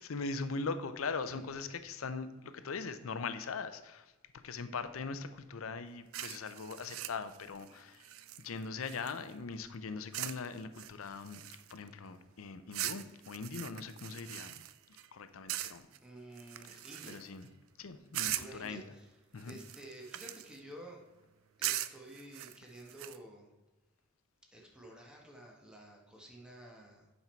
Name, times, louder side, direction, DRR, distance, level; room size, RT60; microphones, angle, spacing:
voice 1, 0.0-8.1 8.4-11.4 11.7-14.5 15.1-15.8 16.7-16.8 17.1-17.5 17.8-18.8 19.3-19.6, left 4 dB, 80° left, 11 dB, 0.6 m, -41 dB
sound 1, 6.1-9.4 10.1-10.5 10.7-11.9 12.7-15.1 15.5-16.0 16.4-17.4 18.1-18.7 19.4-20.6 21.6-23.2, right 13 dB, 80° right, 0.4 m, -40 dB
voice 2, 16.0-17.3 18.2-19.1 19.5-21.0 21.6-23.5 24.5-27.1, right 1 dB, 5° right, -1 dB, 1.4 m, -51 dB
8.3 x 5.4 x 4.5 m, 1.1 s
head